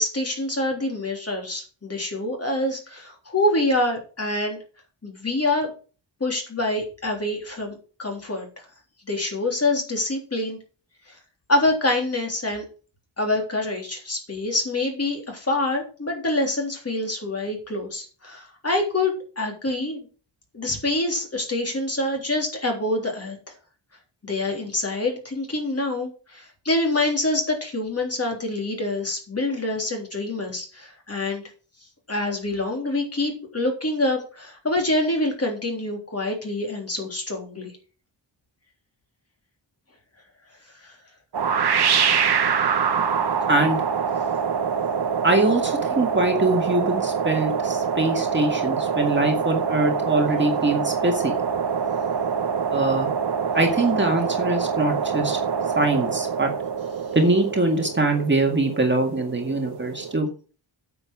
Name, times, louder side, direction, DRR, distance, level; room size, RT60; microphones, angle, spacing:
voice 1, 0.0-4.6 5.0-5.7 6.2-8.5 9.1-10.6 11.5-12.7 13.2-20.1 20.5-23.4 24.2-31.4 32.1-37.7 40.8-40.9, left 2 dB, 30° left, 1 dB, 3.5 m, -26 dB
sound 1, 41.3-60.2, right 6 dB, 60° right, 1.2 m, -25 dB
voice 2, 43.5-43.8 45.2-51.3 52.7-53.1 53.5-55.4 55.8-56.5 57.2-60.3, right 2 dB, 25° right, 2 dB, 2.1 m, -23 dB
9.2 x 7.0 x 6.1 m, 0.37 s
wide cardioid pair, 130°, 45 cm